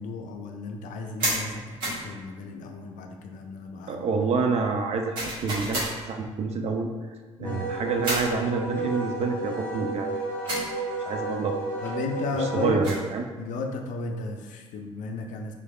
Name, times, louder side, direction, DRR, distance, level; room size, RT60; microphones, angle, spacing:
voice 1, 0.0-4.1 7.4-7.6 11.8-12.8 13.4-15.5, left 3 dB, 55° left, 4 dB, 0.4 m, -34 dB
sound 1, 1.2-1.4 1.8-2.1 5.1-5.9 8.0-8.3 10.5-10.7 12.6-13.1, right 1 dB, 65° right, 1.4 m, -29 dB
voice 2, 3.9-6.9 7.4-10.1 11.1-11.6 12.5-13.2, right 4 dB, 45° right, 4 dB, 0.4 m, -27 dB
Wind instrument woodwind instrument, 7.4-12.7, right 2 dB, 10° left, 1.0 m, -32 dB
3.3 x 3.2 x 2.3 m, 1.3 s
hypercardioid pair, 50°, 15 cm